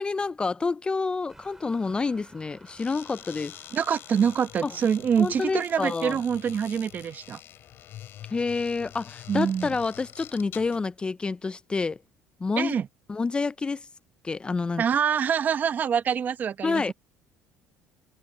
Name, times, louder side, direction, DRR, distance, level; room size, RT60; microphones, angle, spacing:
voice 1, 0.0-3.6 4.6-4.7 5.2-6.2 8.3-12.0 12.4-12.7 13.1-13.9 14.2-14.8 16.6-16.9, left 4 dB, 20° left, 0.5 m, -28 dB
sound 1, 1.3-7.3, right 2 dB, 10° right, 6.7 m, -56 dB
sound 2, 2.6-10.9, left 12 dB, 60° left, 6.0 m, -46 dB
voice 2, 3.7-7.4 9.3-9.7 12.6-12.9 14.8-16.9, right 7 dB, 45° right, 1.0 m, -25 dB
supercardioid pair, 85°, 4 cm